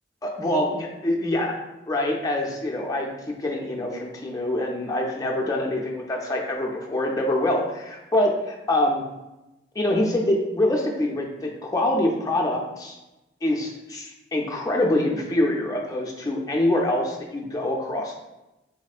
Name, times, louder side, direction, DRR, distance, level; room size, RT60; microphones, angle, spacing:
voice 1, 0.2-1.5 1.9-9.0 9.8-13.0 13.4-18.1, left 1 dB, 20° left, -1 dB, 0.4 m, -25 dB
4.1 x 2.0 x 2.3 m, 0.97 s
head